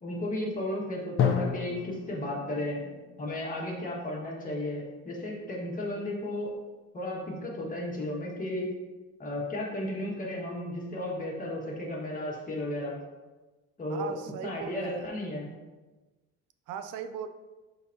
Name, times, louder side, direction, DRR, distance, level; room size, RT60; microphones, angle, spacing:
voice 1, 0.0-2.8 3.2-6.5 6.9-8.7 9.2-12.9 13.8-14.1 14.4-15.5, left 1 dB, 25° left, -3 dB, 1.7 m, -34 dB
Drum, 1.2-4.9, left 7 dB, 45° left, 0.6 m, -32 dB
voice 2, 13.9-15.1 16.7-17.3, right 8 dB, 85° right, 10 dB, 0.6 m, -38 dB
11.5 x 4.0 x 2.8 m, 1.2 s
cardioid pair, 155°, 31 cm